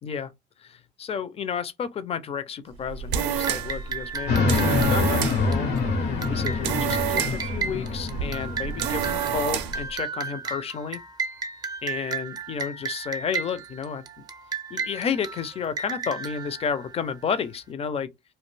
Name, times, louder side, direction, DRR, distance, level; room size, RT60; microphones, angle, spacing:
voice 1, 0.0-0.3 0.6-5.8 6.3-11.0 11.8-14.0 14.7-18.1, left 7 dB, 35° left, 0.4 m, -31 dB
sound 1, 2.7-9.9, right 9 dB, 85° right, 0.4 m, -30 dB
sound 2, 3.4-17.6, right 5 dB, 25° right, 0.4 m, -34 dB
sound 3, 4.3-9.7, left 4 dB, 85° left, 0.9 m, -26 dB
2.3 x 2.1 x 3.1 m
cardioid pair, 110°, 17 cm